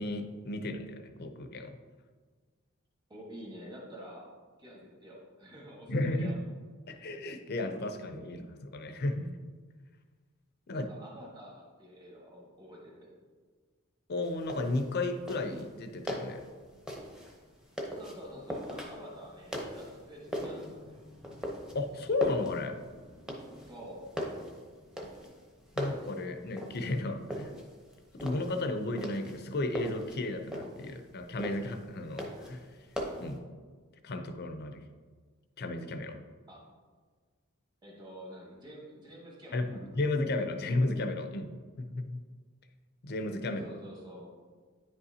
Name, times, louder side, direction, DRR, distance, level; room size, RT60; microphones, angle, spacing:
voice 1, 0.0-1.8 5.9-6.3 6.9-9.3 10.7-10.9 14.1-16.4 21.7-22.8 25.8-27.5 28.1-32.8 33.2-33.4 34.0-34.8 35.6-36.2 39.5-41.5 41.8-42.2 43.0-43.7, left 2 dB, 50° left, 7 dB, 0.6 m, -33 dB
voice 2, 3.1-4.3 4.6-6.4 10.7-13.1 18.0-21.0 23.6-24.1 36.5-36.6 37.8-39.9 43.4-44.3, equal, 20° right, -4 dB, 1.4 m, -48 dB
sound 1, 14.2-33.4, equal, 5° right, 0.8 m, -41 dB
9.6 x 5.4 x 2.8 m, 1.5 s
head